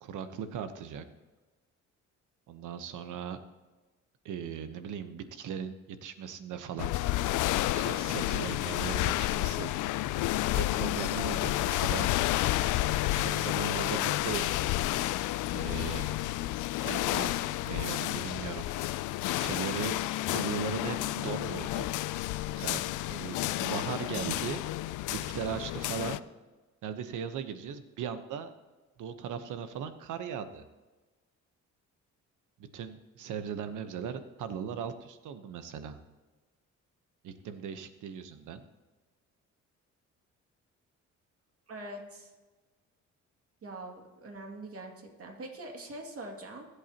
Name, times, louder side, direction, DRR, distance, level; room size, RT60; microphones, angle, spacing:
voice 1, 0.0-1.1 2.5-3.4 4.2-6.9 7.7-9.7 10.0-10.1 10.5-12.1 13.1-14.6 15.5-16.1 16.8-18.6 19.4-20.0 20.3-21.9 22.5-22.8 23.1-24.6 25.1-26.2 26.8-28.5 29.0-30.7 32.6-36.0 37.2-38.6, right 7 dB, 80° right, 10 dB, 1.1 m, -38 dB
sound 1, 6.8-26.2, left 16 dB, 85° left, 0.5 m, -30 dB
voice 2, 41.7-42.3 43.6-46.7, right 1 dB, 50° right, 2 dB, 2.5 m, -43 dB
23.5 x 8.3 x 3.0 m, 1.2 s
cardioid pair, 90°, 30 cm